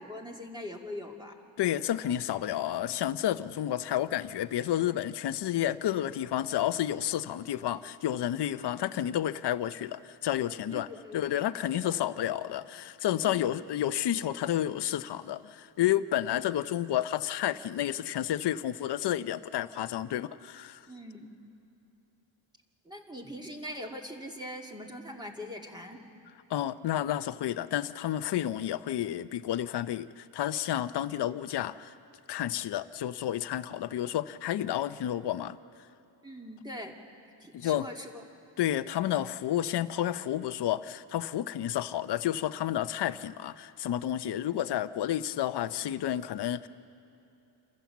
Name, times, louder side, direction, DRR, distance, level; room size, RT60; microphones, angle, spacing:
voice 1, 0.0-1.4 10.7-11.2 11.8-11.9 20.9-21.3 22.8-26.0 36.2-36.9 37.4-38.2, left 1 dB, 10° right, 1 dB, 2.3 m, -42 dB
voice 2, 1.6-10.9 11.1-20.8 26.5-31.9 32.3-35.6 37.5-37.9 38.6-46.7, left 11 dB, 60° left, 11 dB, 0.7 m, -30 dB
28.0 x 15.0 x 7.3 m, 2.9 s
cardioid pair, 100°, 46 cm